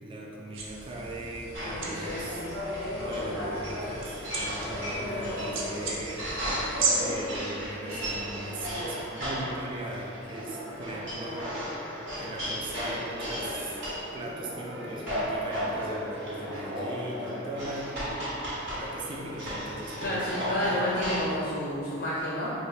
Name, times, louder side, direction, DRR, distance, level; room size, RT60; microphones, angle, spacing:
voice 1, 0.0-2.5 2.9-6.2 7.0-11.6 12.2-13.8 14.1-18.2 18.7-20.9, right 1 dB, 25° right, -2 dB, 0.3 m, -39 dB
sound 1, 0.5-6.9, right 5 dB, 85° right, 0.5 m, -36 dB
sound 2, 1.5-21.2, equal, 60° right, 1.4 m, -34 dB
voice 2, 1.6-2.2 20.0-22.5, left 1 dB, 55° left, -6 dB, 0.5 m, -30 dB
4.7 x 2.1 x 2.7 m, 2.6 s
head